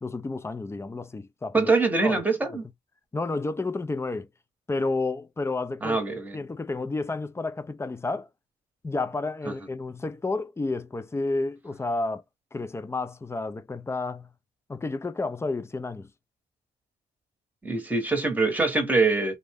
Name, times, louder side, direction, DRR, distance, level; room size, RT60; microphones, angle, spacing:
voice 1, 0.0-1.7 2.0-2.2 3.1-4.3 4.7-6.0 6.3-8.3 8.8-12.2 12.5-14.3 14.7-16.1, left 3 dB, 15° left, 0.3 m, -31 dB
voice 2, 1.5-2.6 5.8-6.4 9.4-9.5 17.6-19.4, right 3 dB, 10° right, 0.9 m, -24 dB
2.5 x 2.0 x 3.4 m
cardioid pair, 90°, 20 cm